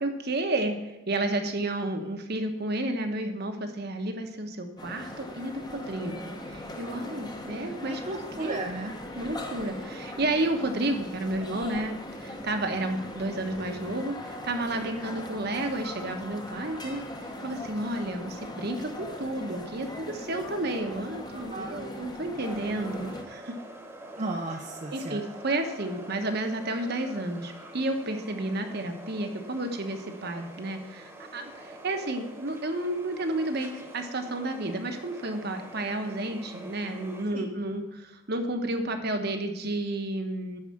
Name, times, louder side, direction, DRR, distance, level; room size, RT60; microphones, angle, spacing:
voice 1, 0.0-8.0 8.4-8.6 9.1-23.6 24.9-40.6, right 1 dB, 50° right, 5 dB, 1.2 m, -31 dB
sound 1, 4.8-23.2, left 1 dB, 20° left, 1.1 m, -40 dB
voice 2, 8.0-8.9 21.3-21.8 24.1-25.2 37.3-37.4, right 2 dB, 35° right, 1 dB, 0.7 m, -34 dB
sound 2, 22.4-37.3, right 1 dB, 10° right, 1.3 m, -46 dB
11.0 x 4.9 x 7.1 m, 1.0 s
head